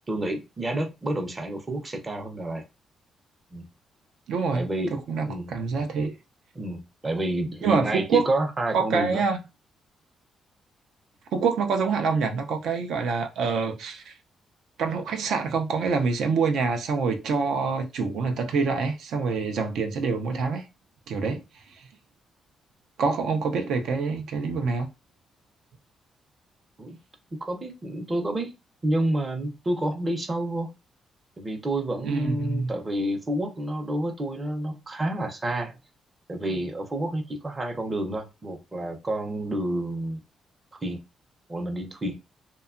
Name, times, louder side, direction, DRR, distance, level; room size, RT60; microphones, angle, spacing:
voice 1, 0.1-2.6 3.5-3.7 4.5-4.9 5.2-5.5 6.5-9.2 26.8-27.0 27.4-28.5 28.8-30.7 31.4-35.8 36.3-40.2 40.8-41.0 41.5-42.2, right 1 dB, 20° right, 0.5 m, -29 dB
voice 2, 4.3-6.1 7.6-8.3 8.7-9.4 11.3-14.1 14.8-20.6 21.1-21.4 21.8-21.9 23.0-24.9 32.0-32.7, right 5 dB, 80° right, 0.4 m, -26 dB
2.8 x 2.2 x 2.3 m
cardioid pair, 130°, 0 cm